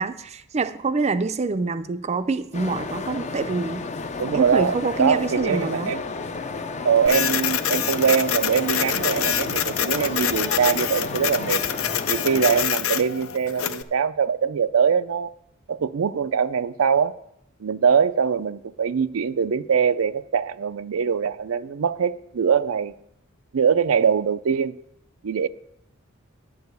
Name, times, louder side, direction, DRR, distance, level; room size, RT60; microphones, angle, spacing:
voice 1, 0.0-3.8 4.3-5.9, right 4 dB, 30° right, 0.5 m, -26 dB
sound 1, 2.5-12.7, left 3 dB, 35° left, 0.5 m, -32 dB
voice 2, 4.2-6.0 6.8-11.6 12.1-15.3 15.7-17.1 17.6-22.9 23.5-24.7 25.2-25.5, right 6 dB, 85° right, 0.5 m, -22 dB
Printer, 7.1-13.8, left 9 dB, 90° left, 0.5 m, -26 dB
10.5 x 4.8 x 8.0 m
head